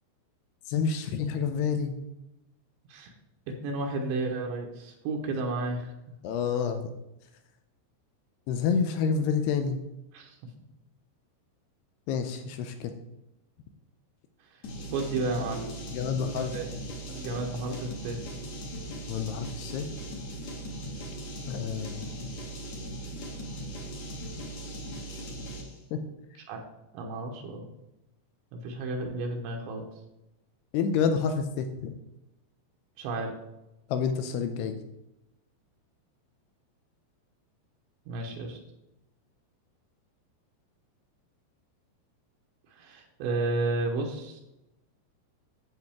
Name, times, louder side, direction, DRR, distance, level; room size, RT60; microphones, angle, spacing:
voice 1, 0.7-2.0 6.2-6.9 8.5-9.8 12.1-12.9 15.9-16.6 17.1-17.2 19.1-19.8 21.4-22.0 25.9-26.0 30.7-32.0 33.9-34.8, left 6 dB, 85° left, 7 dB, 2.4 m, -28 dB
voice 2, 3.5-5.9 10.1-10.4 14.9-15.7 16.3-16.7 17.1-18.2 26.5-26.6 26.9-27.7 28.5-29.8 33.0-33.3 38.1-38.6 42.7-44.4, right 2 dB, 80° right, 1 dB, 3.1 m, -32 dB
sound 1, 14.6-25.8, right 1 dB, 55° left, 2.0 m, -39 dB
10.5 x 7.7 x 3.5 m, 0.92 s
omnidirectional pair, 5.2 m